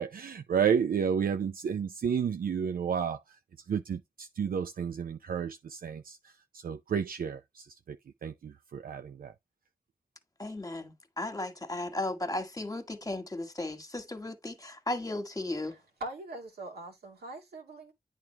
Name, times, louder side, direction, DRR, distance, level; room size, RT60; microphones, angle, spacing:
voice 1, 0.0-3.2 3.7-6.2 6.5-8.0 8.2-9.3, right 7 dB, 65° right, 0.5 m, -31 dB
voice 2, 10.4-15.8, left 2 dB, 20° left, 1.6 m, -35 dB
voice 3, 15.6-17.9, right 2 dB, 80° right, 2.1 m, -42 dB
9.0 x 3.6 x 3.3 m
cardioid pair, 40°, 16 cm